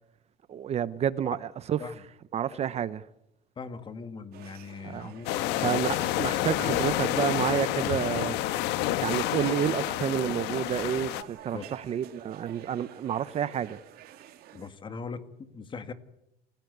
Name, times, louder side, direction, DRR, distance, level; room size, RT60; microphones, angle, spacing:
voice 1, 0.5-1.9 2.3-3.0 4.8-5.1 5.6-8.4 9.0-13.8, right 9 dB, 40° right, 0.8 m, -30 dB
voice 2, 3.6-5.8 11.5-11.7 14.5-15.9, left 5 dB, 30° left, 2.0 m, -40 dB
sound 1, 4.3-14.7, right 12 dB, 60° right, 2.4 m, -50 dB
sound 2, 5.3-11.2, left 14 dB, 75° left, 1.3 m, -29 dB
28.0 x 16.5 x 8.0 m
cardioid pair, 130°, 17 cm